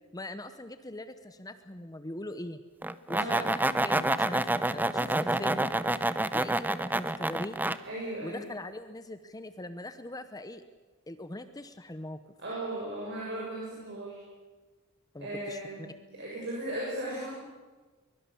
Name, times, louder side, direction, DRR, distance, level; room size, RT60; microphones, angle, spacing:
voice 1, 0.1-2.6 3.1-3.5 3.8-5.7 6.3-7.6 8.2-10.6 11.1-12.2 15.1-15.6, left 1 dB, 15° left, 10 dB, 0.9 m, -41 dB
sound 1, 2.8-7.8, right 1 dB, 10° right, 0.7 m, -28 dB
voice 2, 7.8-8.5 12.4-14.2 15.2-15.9 16.1-17.4, right 1 dB, 55° right, -5 dB, 7.2 m, -36 dB
23.0 x 22.5 x 7.1 m, 1.3 s
head